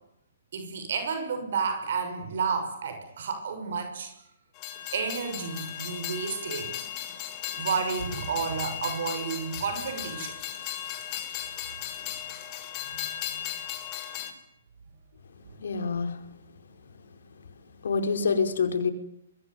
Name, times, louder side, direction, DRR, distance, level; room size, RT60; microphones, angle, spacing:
voice 1, 0.5-4.1 4.9-6.7 7.6-10.4 12.8-13.4, right 5 dB, 60° right, 7 dB, 6.2 m, -31 dB
Train, 4.6-14.3, left 11 dB, 25° left, 5.1 m, -36 dB
voice 2, 15.6-16.2 17.8-18.9, left 5 dB, 75° left, 7 dB, 5.0 m, -26 dB
24.0 x 24.0 x 9.6 m, 0.79 s
hypercardioid pair, 155°, 0 cm